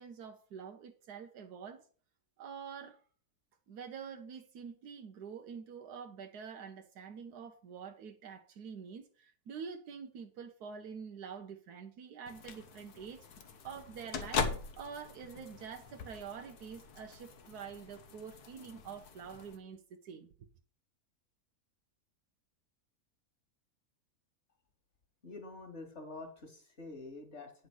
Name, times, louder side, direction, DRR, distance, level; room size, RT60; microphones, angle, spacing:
voice 1, 0.0-1.8 2.4-3.0 3.7-13.3 13.6-14.5 14.8-20.3, right 6 dB, 90° right, 1.4 m, -46 dB
sound 1, 12.3-19.6, left 5 dB, 80° left, 1.6 m, -41 dB
voice 2, 25.2-27.5, left 2 dB, 45° left, 2.5 m, -47 dB
9.7 x 5.2 x 6.2 m
omnidirectional pair, 1.6 m